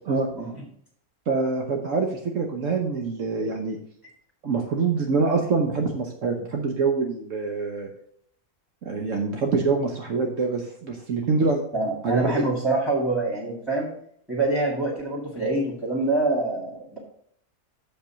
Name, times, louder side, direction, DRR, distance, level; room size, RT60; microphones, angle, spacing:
voice 1, 1.3-3.8 4.4-7.9 8.8-11.6 12.0-12.4, right 4 dB, 60° right, 3 dB, 1.2 m, -25 dB
voice 2, 11.7-13.9 14.3-17.0, right 2 dB, ahead, -4 dB, 2.0 m, -25 dB
6.9 x 5.5 x 5.8 m, 0.66 s
omnidirectional pair, 1.5 m